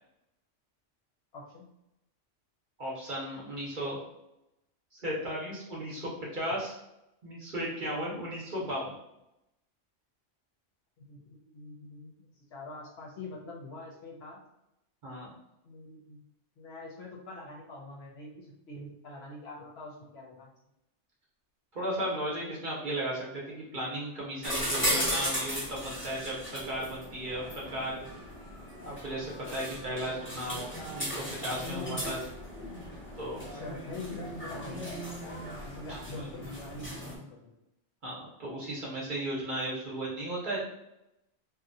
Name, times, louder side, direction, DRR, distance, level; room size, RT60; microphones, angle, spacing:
voice 1, 1.3-1.6 11.1-12.1 12.5-14.4 15.6-16.2 16.6-20.5 31.7-32.0 33.5-35.1 35.6-37.5, left 2 dB, 65° left, -2 dB, 0.8 m, -44 dB
voice 2, 2.8-4.0 4.9-6.8 7.2-8.9 15.0-15.3 21.7-28.0 28.8-32.2 33.2-33.4 36.2-36.3 38.0-40.6, right 1 dB, 45° right, -5 dB, 0.8 m, -35 dB
sound 1, 24.4-37.2, equal, 10° left, 0.7 m, -36 dB
2.8 x 2.1 x 2.6 m, 0.88 s
omnidirectional pair, 1.3 m